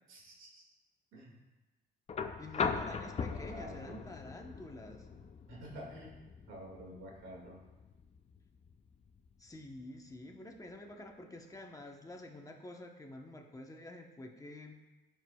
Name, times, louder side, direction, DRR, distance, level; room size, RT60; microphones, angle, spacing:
voice 1, 0.1-0.7 1.1-1.4 2.9-4.1 5.5-6.2 6.5-7.6, equal, 85° right, -2 dB, 2.1 m, -49 dB
sound 1, 2.1-10.1 11.5-11.6, left 5 dB, 35° left, 0.4 m, -41 dB
voice 2, 2.4-5.1 9.4-14.8, left 1 dB, 15° left, 3 dB, 1.0 m, -49 dB
14.0 x 4.6 x 2.3 m, 1.1 s
cardioid pair, 90°, 20 cm